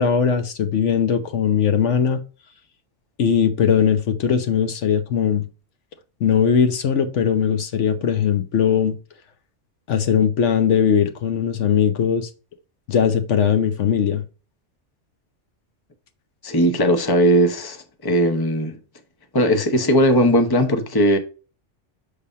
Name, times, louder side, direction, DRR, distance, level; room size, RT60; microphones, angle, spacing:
voice 1, 0.0-2.2 3.2-5.4 6.2-9.0 9.9-12.3 12.9-14.2, left 7 dB, 75° left, 1.1 m, -19 dB
voice 2, 16.4-18.8 19.3-21.2, equal, 20° left, 0.8 m, -18 dB
6.7 x 3.4 x 5.5 m
omnidirectional pair, 1.2 m